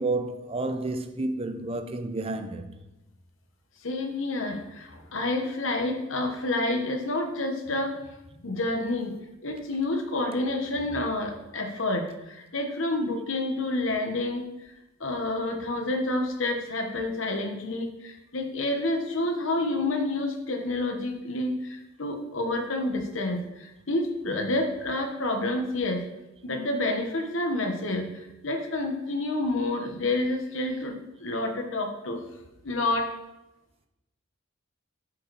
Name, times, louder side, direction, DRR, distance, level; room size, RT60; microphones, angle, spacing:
voice 1, 0.0-2.7, right 2 dB, 30° right, 0.6 m, -30 dB
voice 2, 3.8-8.0 8.4-14.7 15.0-26.1 26.4-32.2 32.6-33.1, left 2 dB, 70° left, 1.1 m, -29 dB
8.4 x 5.2 x 4.6 m
head